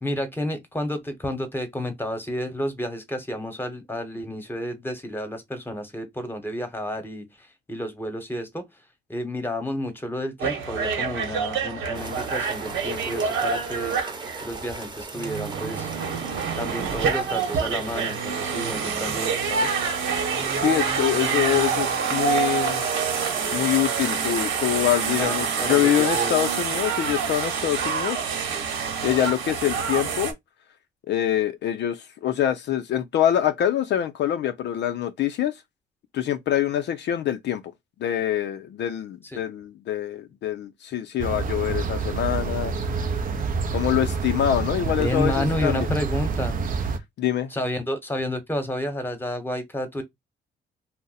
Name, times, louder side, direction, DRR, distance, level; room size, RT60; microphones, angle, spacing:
voice 1, 0.0-8.6 9.1-14.0 14.4-15.9 16.6-19.7 25.2-26.4 39.2-39.4 45.0-46.6 47.5-50.0, left 1 dB, 10° left, 1.0 m, -31 dB
sound 1, 10.4-14.7 15.1-30.3, right 6 dB, 75° right, 1.1 m, -27 dB
sound 2, 11.9-25.2, right 3 dB, 20° right, 0.9 m, -39 dB
voice 2, 20.6-22.8 23.5-28.2 29.0-30.3 31.1-35.5 36.1-37.6 38.0-43.0 43.7-45.9 47.2-47.5, left 11 dB, 60° left, 0.4 m, -25 dB
sound 3, 41.2-47.0, right 4 dB, 45° right, 0.5 m, -27 dB
2.6 x 2.1 x 3.9 m
cardioid pair, 90°, 20 cm